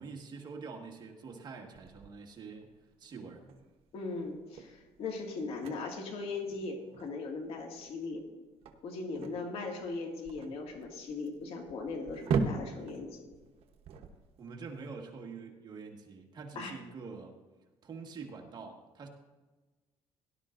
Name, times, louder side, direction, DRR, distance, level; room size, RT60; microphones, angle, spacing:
voice 1, 0.0-2.7 3.0-3.4 14.4-17.3 17.8-19.1, right 4 dB, 40° right, 1 dB, 1.8 m, -45 dB
sound 1, 1.7-14.9, right 5 dB, 65° right, 1.1 m, -40 dB
voice 2, 3.9-8.3 8.8-13.3 16.6-16.8, left 3 dB, 65° left, 2 dB, 2.2 m, -39 dB
18.0 x 11.5 x 2.6 m, 1.3 s
cardioid pair, 120°, 11 cm